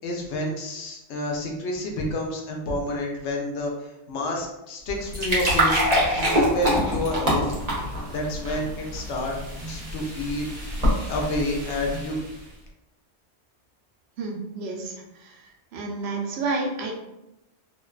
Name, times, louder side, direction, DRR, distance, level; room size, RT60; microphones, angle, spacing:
voice 1, 0.0-7.5 8.1-9.4 9.7-10.5 11.1-12.2, left 1 dB, 90° left, 0 dB, 0.9 m, -29 dB
sound 1, 4.9-12.4, equal, 40° right, 0.8 m, -26 dB
voice 2, 14.2-15.4 15.7-16.9, right 3 dB, 75° right, 1 dB, 0.8 m, -30 dB
2.5 x 2.1 x 2.3 m, 0.90 s
omnidirectional pair, 1.1 m